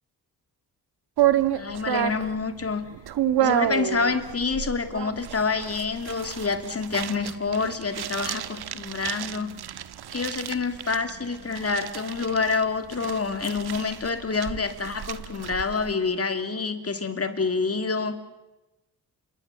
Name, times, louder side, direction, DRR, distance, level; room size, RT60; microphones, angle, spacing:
sound 1, 1.2-15.9, right 11 dB, 85° right, 1.3 m, -30 dB
voice 1, 1.5-2.8 3.4-9.5 10.1-18.2, left 4 dB, 40° left, 8 dB, 2.8 m, -27 dB
27.5 x 24.5 x 7.5 m, 1.0 s
cardioid pair, 85°, 38 cm